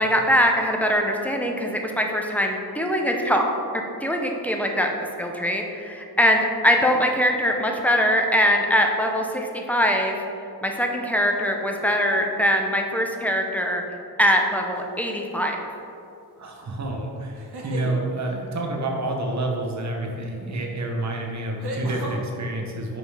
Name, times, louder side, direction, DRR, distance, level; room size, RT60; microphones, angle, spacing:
voice 1, 0.0-3.5 4.0-4.9 5.2-10.2 10.6-13.8 14.2-15.6, equal, 5° left, 1 dB, 0.6 m, -22 dB
sound 1, 14.7-15.2 17.3-18.0 20.2-20.3 21.6-22.2, right 1 dB, 75° right, 1.1 m, -34 dB
voice 2, 16.4-23.0, right 2 dB, 45° right, 1 dB, 1.0 m, -29 dB
5.6 x 5.3 x 4.8 m, 2.6 s
wide cardioid pair, 135°, 39 cm